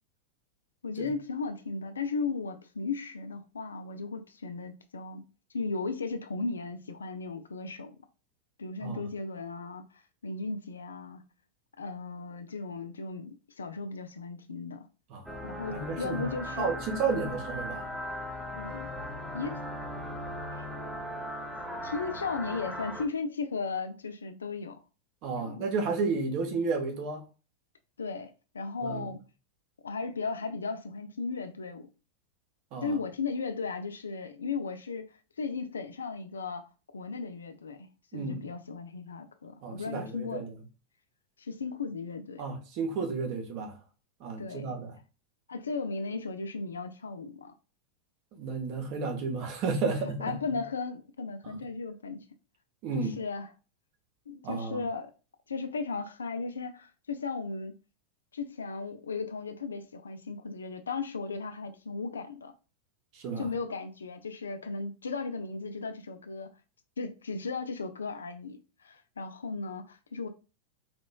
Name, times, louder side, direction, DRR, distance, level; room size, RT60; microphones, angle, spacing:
voice 1, 0.8-5.2 5.5-8.0 8.6-9.8 10.2-11.2 11.8-14.9 15.4-16.7 18.5-18.9 19.3-19.6 20.5-20.6 21.8-24.8 25.4-25.7 28.0-29.2 29.8-31.9 32.8-35.1 35.4-36.7 36.9-37.9 38.1-40.5 41.4-42.4 44.4-44.8 45.5-47.5 50.2-52.2 53.2-53.5 54.3-55.1 55.5-57.7 58.3-62.5 63.4-66.5 67.0-70.3, left 4 dB, 70° left, 0.4 m, -36 dB
sound 1, 15.3-23.1, equal, ahead, 0.7 m, -38 dB
voice 2, 15.7-16.2 16.6-17.9 25.2-27.2 28.8-29.1 32.7-33.0 38.1-38.4 39.6-40.5 42.4-43.8 44.2-45.0 48.3-50.3 51.4-51.6 52.8-53.2 54.4-54.8 63.1-63.5, right 4 dB, 45° right, 1.0 m, -32 dB
4.2 x 2.9 x 2.2 m
figure-of-eight pair, 90°, 0 cm